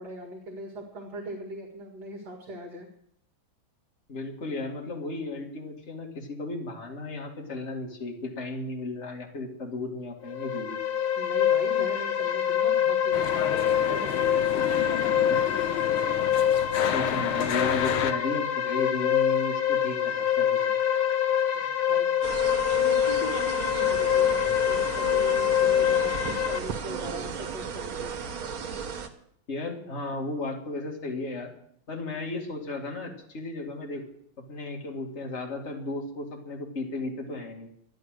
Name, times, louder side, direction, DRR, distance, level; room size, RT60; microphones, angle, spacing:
voice 1, 0.0-2.9 11.2-15.6 21.5-22.1 22.7-28.2, equal, 55° right, 1 dB, 2.5 m, -40 dB
voice 2, 4.1-10.8 14.5-14.8 15.1-15.4 16.9-20.6 29.5-31.5 31.9-34.0 34.5-37.7, left 2 dB, 35° left, 0 dB, 2.3 m, -34 dB
sound 1, 10.3-26.6, left 9 dB, 55° left, 1.2 m, -25 dB
sound 2, 13.1-18.1, left 9 dB, 75° left, 1.6 m, -32 dB
sound 3, 22.2-29.1, right 6 dB, 75° right, 2.1 m, -35 dB
13.5 x 11.0 x 6.4 m, 0.69 s
omnidirectional pair, 2.3 m